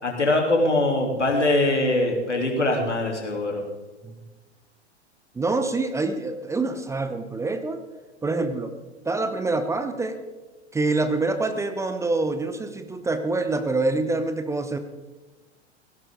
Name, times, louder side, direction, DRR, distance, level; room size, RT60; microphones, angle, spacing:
voice 1, 0.0-3.6, left 2 dB, 85° left, 0 dB, 3.3 m, -22 dB
voice 2, 5.3-7.8 8.2-8.7 9.0-10.2 10.7-14.8, right 3 dB, 10° right, 9 dB, 0.8 m, -26 dB
17.0 x 16.5 x 3.8 m, 1.2 s
figure-of-eight pair, 100°, 34 cm